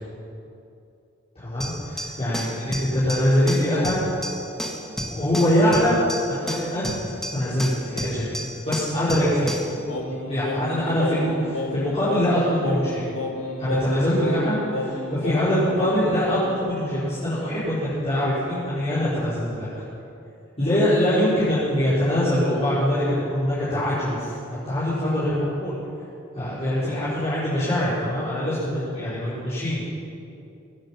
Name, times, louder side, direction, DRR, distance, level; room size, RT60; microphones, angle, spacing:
voice 1, 1.3-4.0 5.1-6.0 6.3-7.0 7.3-8.4 8.6-9.6 10.2-13.0 13.6-19.7 20.6-25.7 26.3-29.8, equal, 30° left, -13 dB, 4.8 m, -23 dB
sound 1, 1.6-9.8, equal, ahead, 1.6 m, -32 dB
Singing, 9.9-16.7, left 2 dB, 80° left, 1.6 m, -31 dB
24.5 x 9.4 x 5.9 m, 2.7 s
head